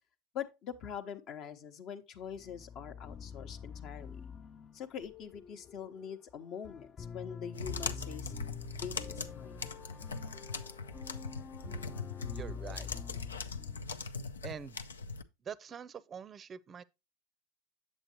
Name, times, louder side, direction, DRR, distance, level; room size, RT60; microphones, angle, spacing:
voice 1, 0.3-4.2 4.7-8.3 8.7-9.7, left 8 dB, 50° left, 0.9 m, -44 dB
sound 1, 2.3-14.3, left 6 dB, 30° left, 0.4 m, -46 dB
sound 2, 7.5-15.2, left 4 dB, 90° left, 0.5 m, -41 dB
voice 2, 12.3-12.9 14.4-14.8 15.4-16.8, right 7 dB, 30° right, 0.5 m, -44 dB
7.9 x 7.4 x 2.9 m
hypercardioid pair, 85°, 0 cm